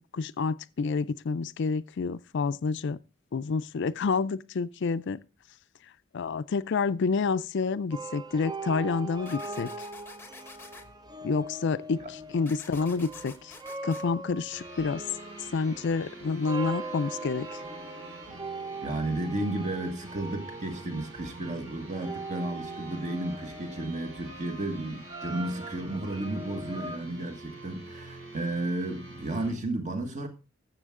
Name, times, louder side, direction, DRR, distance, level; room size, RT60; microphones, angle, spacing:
voice 1, 0.0-3.0 3.3-5.2 6.1-9.7 11.2-13.6 13.8-15.0 15.5-17.6, left 4 dB, 60° left, 0.4 m, -29 dB
sound 1, 7.9-27.0, right 2 dB, 20° right, 0.7 m, -41 dB
sound 2, 9.3-10.8 12.5-14.0, left 3 dB, 10° left, 0.9 m, -48 dB
sound 3, 14.5-29.5, right 2 dB, 70° right, 3.4 m, -47 dB
voice 2, 18.8-30.3, right 1 dB, 35° right, 1.6 m, -33 dB
13.5 x 7.3 x 3.7 m
head